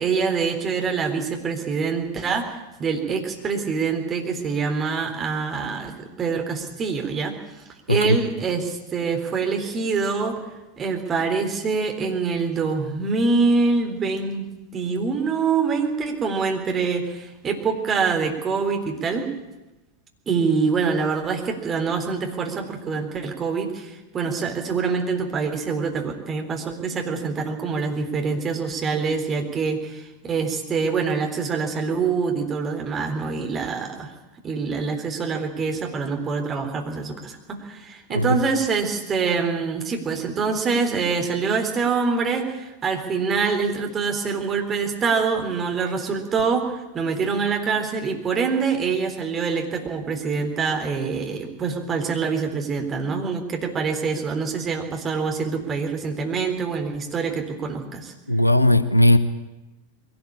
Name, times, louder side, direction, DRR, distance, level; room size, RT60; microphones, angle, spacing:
voice 1, 0.0-10.4 10.8-19.3 20.3-34.1 34.4-58.1, right 5 dB, 25° right, 3 dB, 3.8 m, -25 dB
voice 2, 58.3-59.2, left 1 dB, 85° left, 13 dB, 1.1 m, -17 dB
22.0 x 17.5 x 8.5 m, 1.0 s
figure-of-eight pair, 90°, 0 cm